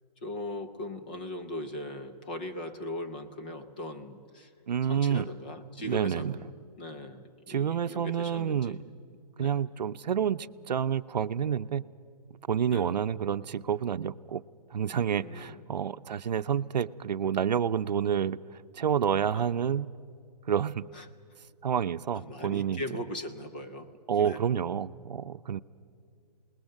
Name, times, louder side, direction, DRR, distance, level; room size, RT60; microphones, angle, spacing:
voice 1, 0.2-4.5 4.8-6.5 6.8-8.8 9.4-9.6 12.6-13.0 15.1-15.6 19.3-19.5 20.9-21.1 22.1-23.9 24.2-24.4, left 1 dB, 15° left, 6 dB, 0.5 m, -39 dB
voice 2, 4.7-5.3 5.8-6.3 7.5-8.8 9.4-11.8 12.5-14.4 14.7-18.4 18.7-19.9 20.5-20.9 21.6-22.8 24.1-25.6, right 8 dB, 90° right, 13 dB, 0.6 m, -29 dB
27.0 x 20.0 x 6.5 m, 2.4 s
hypercardioid pair, 175°, 21 cm